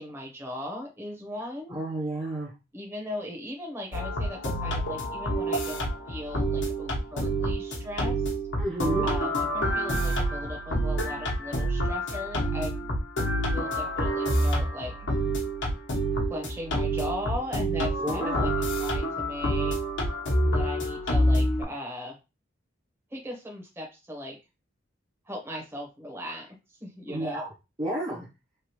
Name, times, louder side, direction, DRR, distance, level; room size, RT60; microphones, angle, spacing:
voice 1, 0.0-1.8 2.7-8.2 9.0-12.9 13.5-15.1 16.3-18.5 18.8-19.8 20.4-22.2 23.1-24.4 25.2-26.5 26.8-27.4, left 1 dB, 15° right, -1 dB, 1.1 m, -38 dB
voice 2, 1.7-2.5 8.6-9.1 18.0-18.5 27.1-27.5 27.8-28.3, right 1 dB, 30° right, -5 dB, 0.7 m, -31 dB
sound 1, 3.9-21.6, right 1 dB, 75° left, 1.0 m, -27 dB
3.3 x 2.4 x 2.9 m, 0.26 s
head